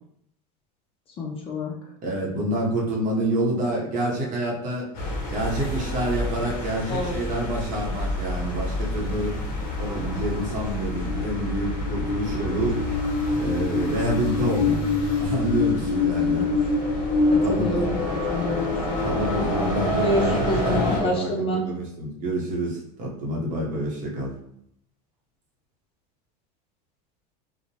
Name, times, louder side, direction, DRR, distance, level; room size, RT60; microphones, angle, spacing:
voice 1, 1.2-1.7 6.9-7.1 12.3-12.6 16.3-16.5 17.3-17.9 18.3-19.0 20.0-21.6, left 1 dB, 25° left, -2 dB, 0.4 m, -27 dB
voice 2, 2.0-4.9 5.3-12.8 13.4-14.8 15.2-16.5 17.3-18.1 19.0-24.3, right 1 dB, 35° right, -2 dB, 0.8 m, -28 dB
sound 1, 4.9-21.0, left 2 dB, 40° left, 0.8 m, -26 dB
2.7 x 2.1 x 2.8 m, 0.72 s
supercardioid pair, 135°, 21 cm